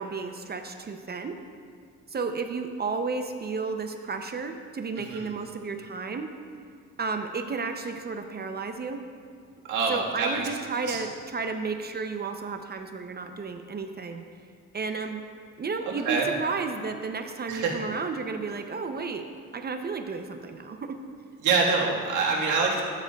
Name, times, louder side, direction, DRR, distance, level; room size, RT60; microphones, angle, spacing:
voice 1, 0.0-1.4 2.1-6.3 7.0-9.0 9.9-14.2 14.7-15.2 15.6-19.3 19.5-21.0, right 4 dB, 35° right, 6 dB, 0.6 m, -32 dB
voice 2, 5.0-5.3 9.7-11.0 15.8-16.3 17.5-17.7 21.4-22.8, right 4 dB, 85° right, -3 dB, 1.6 m, -26 dB
12.0 x 9.2 x 2.3 m, 2.1 s
cardioid pair, 90°, 30 cm